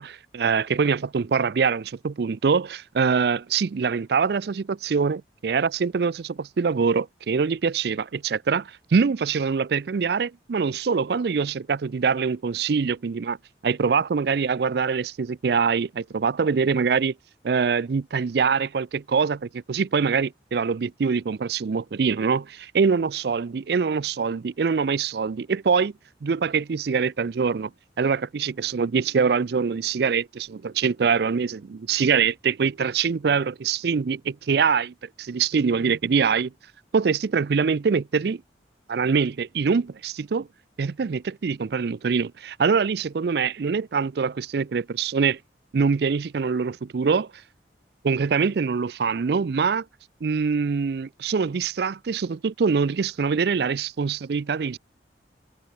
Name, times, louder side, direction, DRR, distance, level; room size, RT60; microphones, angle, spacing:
voice 1, 0.0-13.4 13.6-17.1 17.4-25.9 26.2-27.7 28.0-36.5 36.9-38.4 38.9-40.5 40.8-45.4 45.7-47.3 48.0-49.8 50.2-54.8, right 5 dB, 60° right, 0.4 m, -24 dB
head